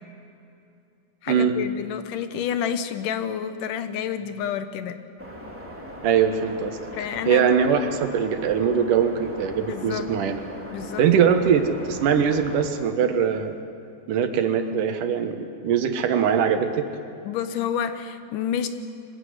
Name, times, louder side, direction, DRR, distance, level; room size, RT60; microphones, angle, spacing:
voice 1, 1.2-5.0 6.9-7.5 9.7-10.1 10.7-11.0 17.3-18.7, left 8 dB, 90° left, 10 dB, 2.7 m, -29 dB
sound 1, 5.2-12.7, equal, 5° right, 2.6 m, -39 dB
voice 2, 6.0-10.4 11.0-13.6 14.1-16.9, right 7 dB, 85° right, 7 dB, 2.9 m, -22 dB
23.5 x 15.5 x 9.5 m, 2.7 s
omnidirectional pair, 3.6 m